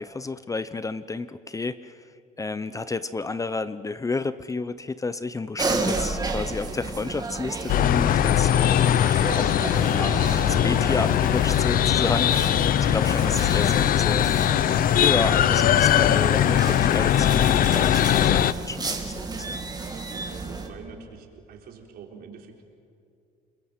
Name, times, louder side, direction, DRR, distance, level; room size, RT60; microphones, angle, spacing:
voice 1, 0.0-2.1 2.4-8.9 9.3-12.5 12.9-19.6, left 3 dB, 20° left, 14 dB, 0.7 m, -31 dB
sound 1, 5.6-20.7, right 3 dB, 25° right, 2.7 m, -33 dB
sound 2, 7.7-18.5, left 11 dB, 55° left, 0.7 m, -20 dB
voice 2, 20.1-22.6, right 6 dB, 65° right, 2 dB, 4.1 m, -44 dB
29.0 x 21.5 x 7.7 m, 2.4 s
cardioid pair, 110°, 17 cm